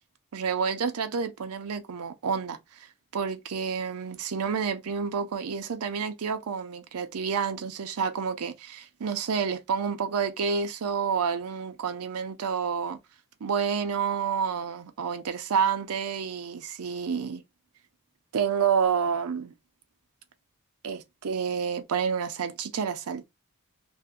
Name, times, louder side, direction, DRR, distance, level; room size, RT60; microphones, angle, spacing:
voice 1, 0.3-2.9 3.1-13.0 13.4-17.4 18.3-19.5 20.8-23.2, right 6 dB, 75° right, 0.5 m, -29 dB
2.6 x 2.2 x 3.5 m
head